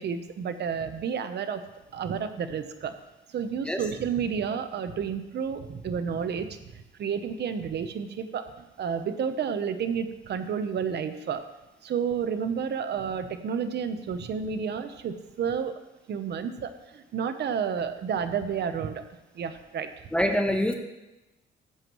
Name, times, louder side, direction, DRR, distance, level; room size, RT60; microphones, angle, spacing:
voice 1, 0.0-1.6 1.9-3.0 3.3-6.5 6.7-11.4 11.8-15.8 16.1-19.0 19.3-19.9, right 7 dB, 60° right, 9 dB, 0.9 m, -31 dB
voice 2, 20.1-20.7, equal, 5° left, 3 dB, 1.0 m, -24 dB
14.5 x 7.7 x 3.1 m, 1.0 s
cardioid pair, 90°, 20 cm